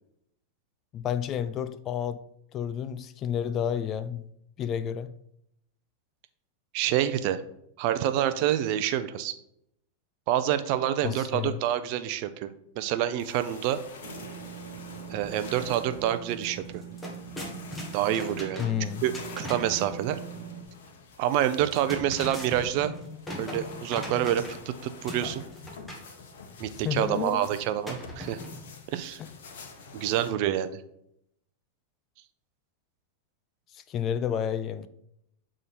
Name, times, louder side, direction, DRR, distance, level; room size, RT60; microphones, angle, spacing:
voice 1, 0.9-2.2 2.5-4.3 4.6-5.1 11.0-11.6 18.6-19.0 26.8-27.4 29.2-29.3 33.7-34.9, left 9 dB, 35° left, 0.5 m, -30 dB
voice 2, 6.7-7.4 7.8-9.4 10.3-12.5 12.8-13.8 15.1-16.6 17.9-18.6 19.0-20.2 21.2-22.9 23.4-25.4 26.6-28.4 28.9-29.2 29.9-30.7, right 11 dB, 55° right, 0.6 m, -27 dB
sound 1, 13.2-30.3, left 4 dB, 70° left, 1.3 m, -46 dB
sound 2, 14.0-20.6, right 8 dB, 75° right, 1.1 m, -43 dB
sound 3, 16.3-16.4 16.7-19.8 21.5-24.7 25.1-26.1 27.8-28.7, left 1 dB, 10° left, 1.6 m, -39 dB
8.1 x 3.7 x 4.3 m
hypercardioid pair, 115°, 0 cm